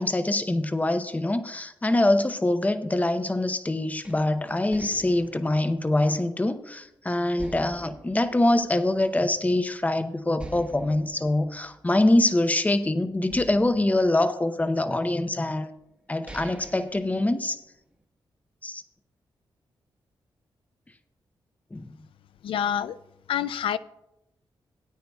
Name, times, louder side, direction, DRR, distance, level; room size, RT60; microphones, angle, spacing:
voice 1, 0.0-15.7 16.1-17.6 18.6-18.8 21.7-21.9, left 1 dB, 15° left, 0.7 m, -24 dB
sound 1, 4.0-6.9 7.4-9.3 9.7-9.8 10.4-12.7 13.3-14.9 15.6-15.7 16.1-17.9, right 1 dB, 15° right, 1.2 m, -45 dB
voice 2, 22.4-23.0 23.3-23.8, left 9 dB, 85° left, 0.4 m, -27 dB
17.5 x 9.4 x 2.3 m
cardioid pair, 75°, 9 cm